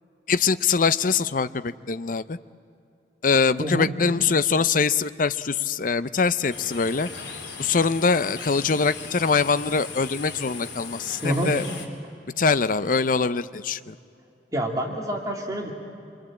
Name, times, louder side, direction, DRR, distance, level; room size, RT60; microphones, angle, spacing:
voice 1, 0.3-2.4 3.2-7.1 7.6-11.7 12.4-14.0, left 5 dB, 50° left, 14 dB, 0.6 m, -23 dB
voice 2, 3.6-3.9 11.2-11.5 14.5-15.7, right 1 dB, 20° right, 1 dB, 2.5 m, -27 dB
sound 1, 6.5-11.9, left 4 dB, 80° left, 3.4 m, -38 dB
26.5 x 23.5 x 8.8 m, 2.7 s
head